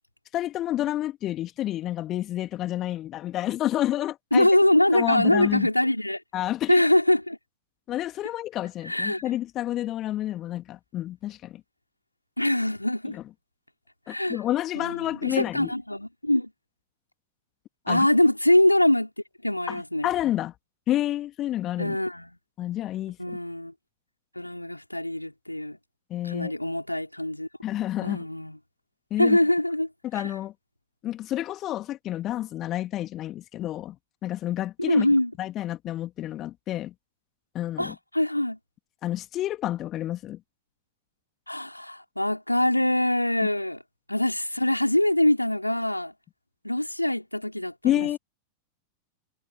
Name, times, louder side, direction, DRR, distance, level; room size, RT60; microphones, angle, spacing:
voice 1, 0.3-4.5 4.9-5.7 6.3-6.9 7.9-11.6 13.1-13.2 14.1-15.7 17.9-18.1 19.7-20.5 20.9-22.0 22.6-23.4 26.1-26.5 27.6-28.2 29.1-29.4 30.1-30.5 31.0-34.0 34.2-35.1 35.4-36.9 37.5-38.0 39.0-40.4 47.8-48.2, left 13 dB, 35° left, 2.3 m, -29 dB
voice 2, 4.3-6.2 6.7-7.4 8.9-9.2 12.4-13.2 14.1-14.4 14.8-16.5 17.9-19.1 19.4-20.1 21.8-22.3 23.2-23.7 24.4-25.8 26.2-27.5 28.0-28.6 29.2-29.9 34.8-35.3 37.8-38.6 41.5-43.8 44.1-46.1 46.6-48.2, left 1 dB, 85° left, 4.0 m, -23 dB
figure-of-eight pair, 90°, 0 cm